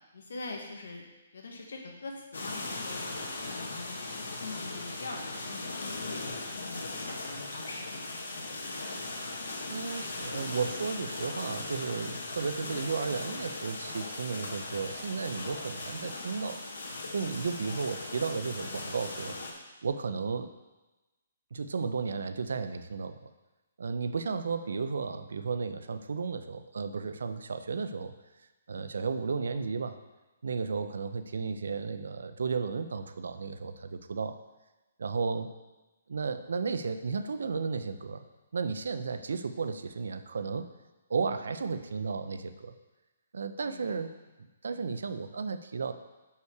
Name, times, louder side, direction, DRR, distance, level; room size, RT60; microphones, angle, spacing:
voice 1, 0.1-1.0 1.3-6.3 6.5-8.0 8.3-8.9 17.5-17.8 43.6-43.9 44.7-45.0, left 3 dB, 70° left, 1 dB, 1.5 m, -44 dB
sound 1, 2.3-19.5, left 2 dB, 90° left, 1.5 m, -38 dB
voice 2, 9.7-16.6 17.1-19.4 19.8-20.5 21.5-23.3 23.8-28.1 28.7-30.0 30.4-34.4 35.0-35.5 36.1-38.2 38.5-40.7 41.1-42.7 43.3-44.1 44.6-45.9, right 5 dB, 80° right, 10 dB, 0.6 m, -33 dB
6.5 x 5.6 x 4.7 m, 1.1 s
hypercardioid pair, 175°, 0 cm